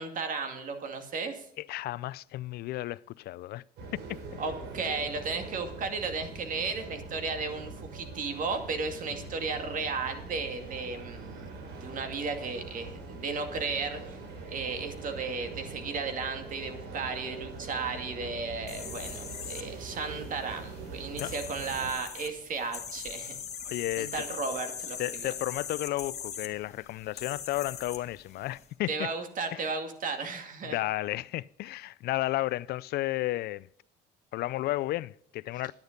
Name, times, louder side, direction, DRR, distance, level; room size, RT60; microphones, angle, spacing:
voice 1, 0.0-1.4 4.4-14.2 14.5-23.4 24.0-25.3 28.9-30.8, right 4 dB, 50° right, 2.2 m, -34 dB
voice 2, 1.6-3.6 21.2-21.3 23.6-24.2 25.0-29.1 29.5-29.6 30.6-33.7 34.3-35.7, left 16 dB, 70° left, 0.4 m, -33 dB
sound 1, 3.8-21.9, right 3 dB, 80° right, 3.3 m, -43 dB
sound 2, 18.7-28.7, left 7 dB, 40° left, 1.8 m, -41 dB
10.5 x 9.7 x 5.2 m
cardioid pair, 110°, 17 cm